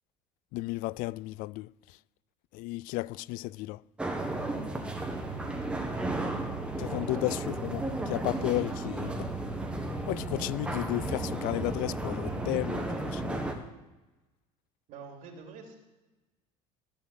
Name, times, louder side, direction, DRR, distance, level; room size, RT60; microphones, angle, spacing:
voice 1, 0.5-1.7 2.5-3.8 6.8-9.3 10.1-13.4, left 20 dB, 70° left, 0.4 m, -33 dB
sound 1, 4.0-13.5, right 2 dB, 5° right, 1.6 m, -34 dB
voice 2, 5.0-5.6 6.9-7.5 14.9-15.7, right 4 dB, 60° right, 3.2 m, -48 dB
16.0 x 7.2 x 9.5 m
cardioid pair, 145°, 15 cm